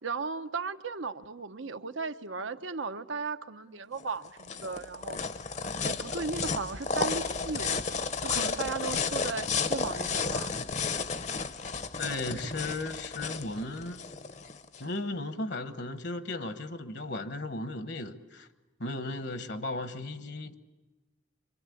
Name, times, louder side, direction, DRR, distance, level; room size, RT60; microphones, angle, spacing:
voice 1, 0.0-5.2 5.6-10.6, right 4 dB, 85° right, 1.0 m, -36 dB
sound 1, 4.0-14.8, left 4 dB, 35° left, 0.8 m, -33 dB
voice 2, 11.9-14.0 14.8-18.5 18.8-20.5, left 2 dB, 60° left, 1.2 m, -36 dB
26.5 x 24.5 x 8.5 m
head